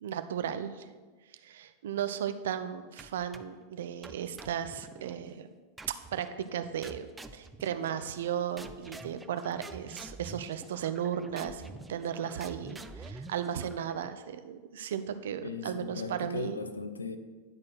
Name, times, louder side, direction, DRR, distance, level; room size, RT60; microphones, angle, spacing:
voice 1, 0.0-0.8 1.4-5.5 5.9-7.1 7.3-11.6 11.9-16.6, right 9 dB, 60° right, 10 dB, 0.5 m, -35 dB
sound 1, 3.0-3.6 4.0-5.2 5.8-6.3 6.8-8.3 8.6-14.3, right 3 dB, 10° right, 0.5 m, -47 dB
voice 2, 15.4-17.2, left 4 dB, 75° left, 10 dB, 0.7 m, -38 dB
10.5 x 4.3 x 6.2 m, 1.4 s
figure-of-eight pair, 90°, 0 cm